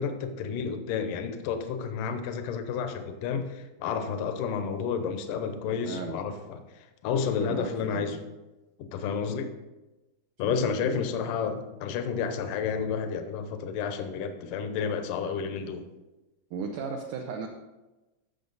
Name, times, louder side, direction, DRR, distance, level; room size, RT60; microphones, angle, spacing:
voice 1, 0.0-8.2 8.8-9.5 10.4-15.9, left 6 dB, 75° left, 8 dB, 1.9 m, -31 dB
voice 2, 5.9-6.2 7.4-8.1 10.5-11.0 16.5-17.5, right 5 dB, 85° right, 2 dB, 1.8 m, -36 dB
14.0 x 6.5 x 4.0 m, 1.1 s
omnidirectional pair, 4.7 m